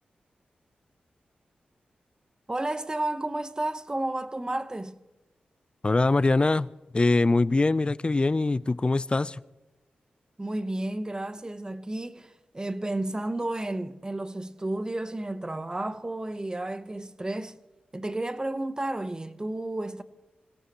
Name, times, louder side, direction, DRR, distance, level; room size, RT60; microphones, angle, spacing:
voice 1, 2.5-5.0 10.4-17.6 17.9-20.0, right 1 dB, 25° right, 1.0 m, -32 dB
voice 2, 5.8-6.7 6.9-9.4, left 3 dB, 35° left, 0.5 m, -23 dB
26.0 x 17.0 x 3.0 m
cardioid pair, 50°, 3 cm